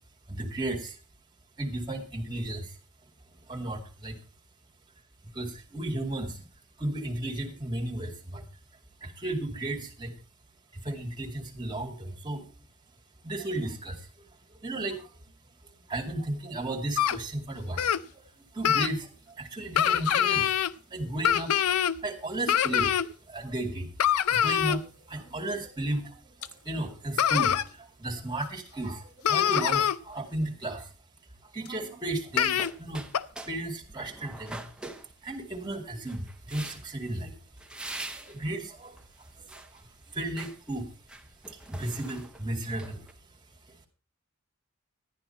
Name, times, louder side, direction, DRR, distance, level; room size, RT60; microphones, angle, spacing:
voice 1, 0.3-1.0 1.6-2.7 3.5-4.2 5.3-6.5 6.8-8.4 9.0-10.1 10.7-12.5 13.2-14.1 14.6-15.1 15.9-17.9 18.5-19.1 19.4-20.5 20.9-21.5 22.0-23.0 23.3-23.9 24.3-26.2 26.6-30.9 31.5-33.1 33.5-34.6 35.2-37.3 38.1-39.0 39.4-39.7 40.1-40.9 41.7-43.0, right 1 dB, 20° right, 2 dB, 2.3 m, -34 dB
sound 1, 17.0-17.2 17.8-18.0 18.6-18.9 19.8-20.7 21.2-22.0 22.5-23.1 24.0-24.8 26.4-26.5 27.2-27.6 28.4-28.5 28.9-29.0 29.2-30.0 31.7-31.8 32.4-32.7 33.1-33.2, left 9 dB, 90° left, 0.5 m, -24 dB
sound 2, 32.3-33.6 33.9-35.5 36.1-37.1 37.6-38.4 38.9-39.8 40.1-40.6 41.0-43.1, right 2 dB, 5° right, 0.8 m, -43 dB
11.5 x 9.9 x 4.3 m, 0.35 s
head